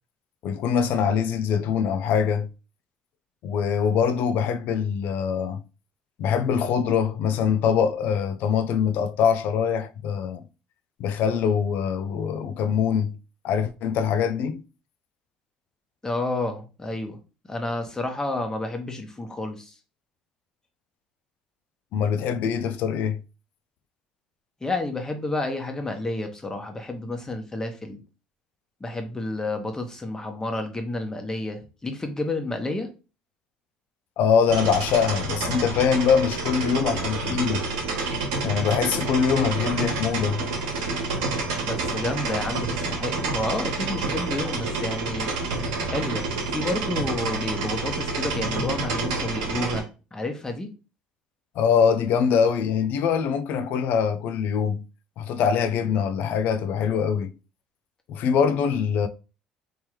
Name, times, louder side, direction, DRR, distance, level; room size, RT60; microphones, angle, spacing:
voice 1, 0.4-2.5 3.4-5.6 6.2-10.4 11.0-13.2 13.4-14.6 21.9-23.2 34.2-37.6 38.4-40.4 51.6-54.8 55.2-57.3 58.1-59.1, left 7 dB, 65° left, 0.5 m, -23 dB
voice 2, 16.0-17.2 17.5-19.7 24.6-28.0 28.8-32.9 41.6-45.3 45.9-50.7, left 2 dB, 20° left, 1.1 m, -30 dB
sound 1, 34.5-49.8, right 3 dB, 85° right, 1.2 m, -28 dB
3.7 x 3.0 x 3.1 m
supercardioid pair, 75°, 3 cm